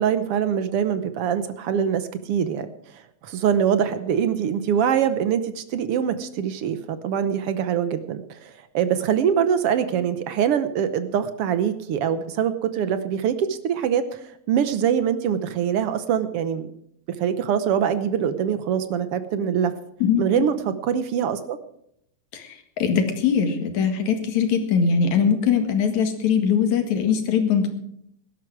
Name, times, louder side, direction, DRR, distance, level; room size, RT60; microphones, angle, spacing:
voice 1, 0.0-2.7 2.9-16.7 17.1-19.7 20.2-21.6, right 8 dB, 65° right, 11 dB, 1.6 m, -24 dB
voice 2, 20.0-20.4 22.3-27.7, left 6 dB, 75° left, 6 dB, 3.2 m, -21 dB
16.5 x 12.5 x 4.7 m, 0.72 s
omnidirectional pair, 3.3 m